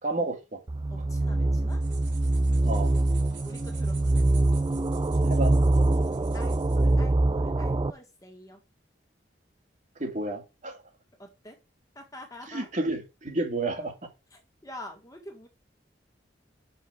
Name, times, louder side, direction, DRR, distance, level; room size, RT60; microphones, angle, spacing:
voice 1, 0.0-0.6 1.0-1.1 2.6-2.9 5.2-5.6 10.0-10.8 12.5-13.9, right 2 dB, 45° right, 2.0 m, -31 dB
sound 1, 0.7-7.9, right 2 dB, 25° right, 0.4 m, -24 dB
voice 2, 0.9-1.8 3.4-4.2 6.3-8.6 11.2-11.6 12.0-12.7 14.3-15.5, left 1 dB, 20° left, 1.9 m, -46 dB
sound 2, 1.7-6.9, right 7 dB, 70° right, 3.4 m, -50 dB
5.9 x 5.3 x 6.9 m
head